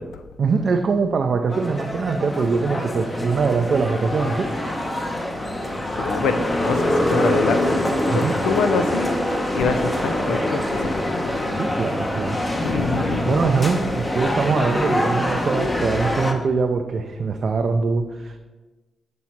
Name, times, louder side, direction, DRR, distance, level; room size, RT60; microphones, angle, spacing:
voice 1, 0.4-4.5 8.1-8.3 11.5-12.4 13.3-18.4, right 4 dB, 60° right, 5 dB, 0.4 m, -22 dB
sound 1, 1.5-16.3, left 1 dB, 20° left, 0.9 m, -24 dB
voice 2, 5.5-9.2 9.5-11.0 12.6-13.4, left 4 dB, 80° left, 8 dB, 0.4 m, -25 dB
7.1 x 3.1 x 4.3 m, 1.2 s
supercardioid pair, 55°, 0 cm